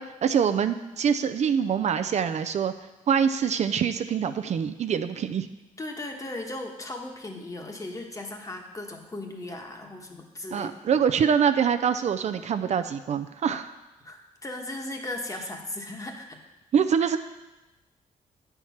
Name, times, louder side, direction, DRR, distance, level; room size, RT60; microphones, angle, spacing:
voice 1, 0.0-2.7 3.1-5.5 10.5-13.7 16.7-17.2, right 7 dB, 55° right, 9 dB, 0.4 m, -24 dB
voice 2, 5.8-10.7 14.0-16.4, left 2 dB, 25° left, 3 dB, 1.2 m, -37 dB
8.6 x 4.6 x 5.7 m, 1.0 s
cardioid pair, 90°, 14 cm